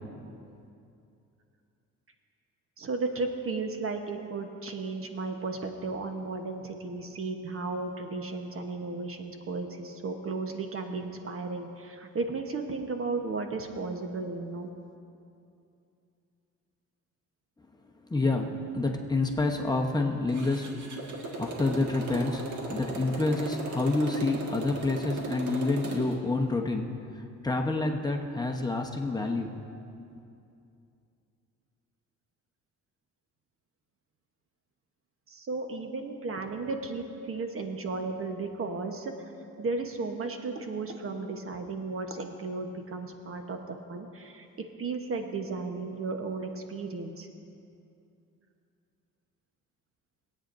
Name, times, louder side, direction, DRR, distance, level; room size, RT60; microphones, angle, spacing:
voice 1, 2.8-14.7 35.3-39.1 39.6-44.5 44.8-47.3, right 3 dB, 45° right, 5 dB, 1.1 m, -34 dB
voice 2, 18.1-29.5, left 2 dB, 15° left, 1 dB, 0.9 m, -28 dB
Motorcycle, 20.3-26.2, right 3 dB, 75° right, 1.7 m, -37 dB
21.5 x 8.6 x 2.6 m, 2.6 s
cardioid pair, 90°, 30 cm